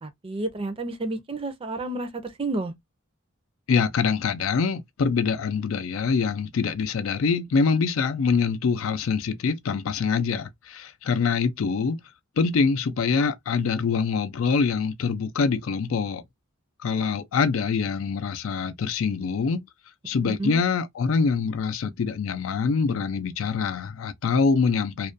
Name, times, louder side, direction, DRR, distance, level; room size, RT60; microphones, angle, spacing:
voice 1, 0.0-2.7 20.2-20.6, right 2 dB, 25° right, 0.5 m, -31 dB
voice 2, 3.7-12.0 12.4-16.2 16.8-19.6 20.1-25.1, left 5 dB, 90° left, 0.4 m, -24 dB
2.4 x 2.1 x 2.4 m
head